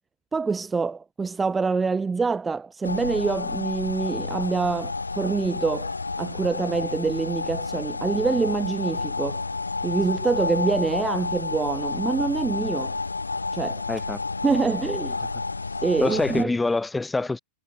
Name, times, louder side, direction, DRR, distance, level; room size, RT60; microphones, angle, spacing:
voice 1, 0.3-5.9 6.2-9.4 9.8-12.9 13.5-13.8 14.4-15.2 15.8-16.5, right 4 dB, 15° right, 0.5 m, -25 dB
sound 1, 2.8-16.4, left 3 dB, 80° left, 3.5 m, -30 dB
voice 2, 13.9-14.2 16.0-17.4, left 3 dB, 10° left, 1.3 m, -25 dB
figure-of-eight pair, 90°, 0 cm